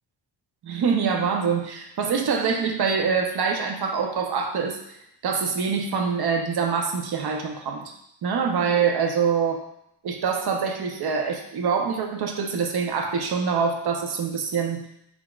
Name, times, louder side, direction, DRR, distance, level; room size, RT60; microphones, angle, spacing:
voice 1, 0.6-4.8 5.2-7.9 8.2-9.6 10.0-14.8, right 6 dB, 60° right, 3 dB, 0.6 m, -25 dB
3.8 x 3.5 x 2.3 m, 0.79 s
wide cardioid pair, 160°, 44 cm